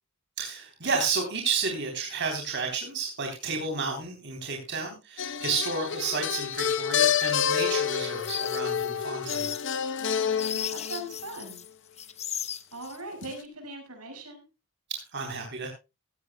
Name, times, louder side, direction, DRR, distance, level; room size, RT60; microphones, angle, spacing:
voice 1, 0.4-9.5 14.9-15.7, right 4 dB, 55° right, 2 dB, 3.7 m, -31 dB
sound 1, 5.2-11.2 13.2-13.4, left 8 dB, 55° left, 0.9 m, -28 dB
sound 2, 7.6-11.7 12.0-13.0, left 9 dB, 30° left, 0.8 m, -37 dB
voice 2, 10.7-11.6 12.7-14.4, right 1 dB, 85° right, 4 dB, 6.3 m, -40 dB
16.0 x 15.0 x 2.3 m, 0.28 s
head